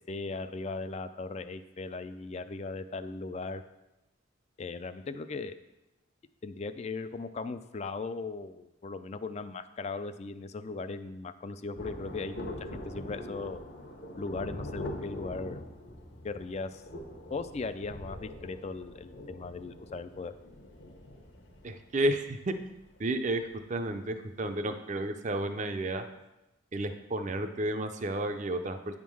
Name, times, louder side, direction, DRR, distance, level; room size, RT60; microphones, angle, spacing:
voice 1, 0.1-3.6 4.6-5.5 6.4-13.6 14.2-15.6 16.2-16.8 17.3-20.4, left 3 dB, 35° left, 12 dB, 0.3 m, -38 dB
Thunder, 11.8-23.8 24.0-24.1, left 1 dB, 60° left, 1.1 m, -43 dB
voice 2, 21.6-22.5 23.0-26.1 26.7-29.0, right 1 dB, 35° right, 8 dB, 0.5 m, -32 dB
9.3 x 3.7 x 6.1 m, 0.97 s
head